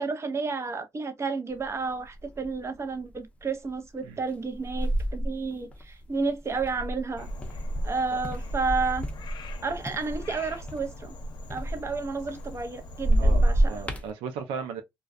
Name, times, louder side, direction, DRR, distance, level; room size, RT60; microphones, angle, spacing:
voice 1, 0.0-7.3 7.8-9.0 9.6-11.1 11.5-13.9, right 4 dB, 30° right, 0.7 m, -31 dB
sound 1, 1.6-1.7 2.1-2.6 3.2-3.4 4.3-9.6 9.9-12.7 13.0-14.1, right 1 dB, 15° left, 0.6 m, -28 dB
Frog, 7.2-13.9, left 1 dB, 60° left, 0.6 m, -41 dB
voice 2, 13.2-14.8, right 6 dB, 90° right, 0.5 m, -36 dB
2.3 x 2.2 x 2.5 m
supercardioid pair, 75°, 9 cm